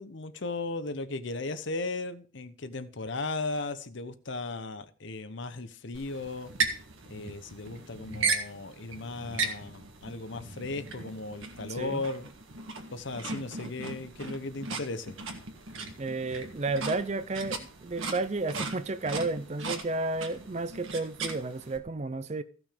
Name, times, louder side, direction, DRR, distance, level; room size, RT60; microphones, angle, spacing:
voice 1, 0.0-6.5 7.1-12.3 12.9-15.2, left 3 dB, 55° left, 0.9 m, -36 dB
sound 1, 5.9-21.8, right 4 dB, 65° right, 1.8 m, -37 dB
voice 2, 11.7-12.0 16.0-22.4, right 3 dB, 30° right, 0.5 m, -32 dB
15.0 x 6.1 x 5.1 m
head